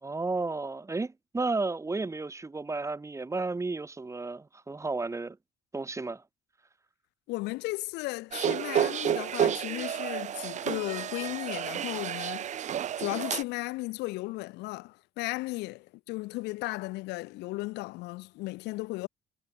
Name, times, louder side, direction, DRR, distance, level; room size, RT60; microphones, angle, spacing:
voice 1, 0.0-5.4 5.7-6.2, right 3 dB, 15° right, 2.5 m, -33 dB
voice 2, 7.3-12.6 13.0-19.1, left 20 dB, 90° left, 1.2 m, -35 dB
sound 1, 8.3-13.4, right 10 dB, 45° right, 0.7 m, -31 dB
cardioid pair, 110°, 17 cm